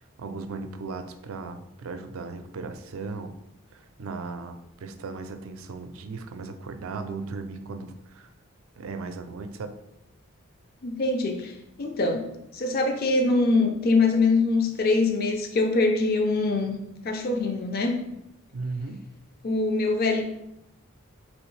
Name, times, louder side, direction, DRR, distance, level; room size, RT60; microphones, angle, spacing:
voice 1, 0.2-3.4 3.7-8.3 8.8-9.7 18.5-19.0, right 4 dB, 80° right, 8 dB, 0.4 m, -36 dB
voice 2, 10.8-11.5 11.8-12.2 12.5-16.7 17.0-18.0 19.4-20.2, left 3 dB, 45° left, 4 dB, 0.5 m, -23 dB
4.4 x 3.1 x 3.1 m, 0.85 s
head